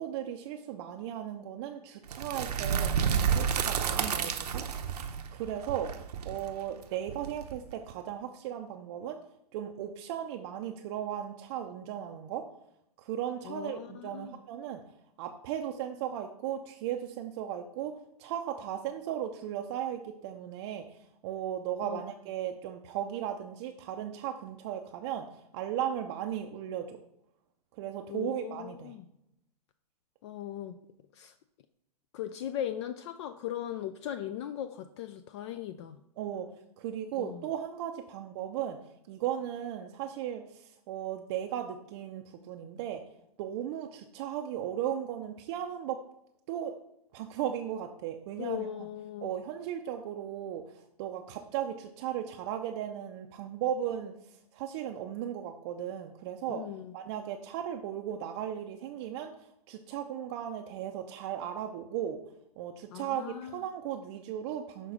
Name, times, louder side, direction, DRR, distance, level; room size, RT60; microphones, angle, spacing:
voice 1, 0.0-4.6 5.0-5.9 6.2-9.2 9.5-12.4 13.0-14.8 15.2-20.8 21.2-25.3 25.5-27.0 27.8-28.9 36.2-36.5 36.8-38.8 39.1-43.0 43.4-46.0 46.5-46.7 47.1-48.7 49.2-54.1 54.5-56.6 56.9-59.3 59.7-62.2 62.6-64.9, right 10 dB, 40° right, 4 dB, 0.5 m, -36 dB
sound 1, 2.1-7.9, right 7 dB, 75° right, 0.8 m, -30 dB
voice 2, 13.4-14.4 21.8-22.0 28.1-29.1 30.2-30.7 31.1-31.3 32.1-36.0 37.1-37.5 48.4-49.3 56.5-56.9 62.9-63.6, left 11 dB, 45° left, 11 dB, 0.4 m, -38 dB
6.5 x 3.8 x 4.9 m, 0.81 s
hypercardioid pair, 115°, 21 cm